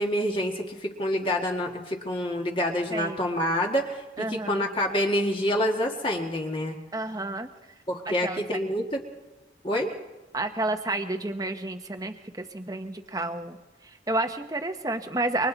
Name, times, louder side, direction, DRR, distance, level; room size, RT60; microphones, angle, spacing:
voice 1, 0.0-6.8 7.9-9.0 9.6-9.9, equal, 30° left, 1 dB, 1.9 m, -27 dB
voice 2, 2.9-3.2 4.2-4.7 6.9-7.5 8.1-8.7 10.3-13.6 13.8-15.5, right 2 dB, 20° right, 7 dB, 1.1 m, -30 dB
28.0 x 24.5 x 4.1 m, 1.2 s
head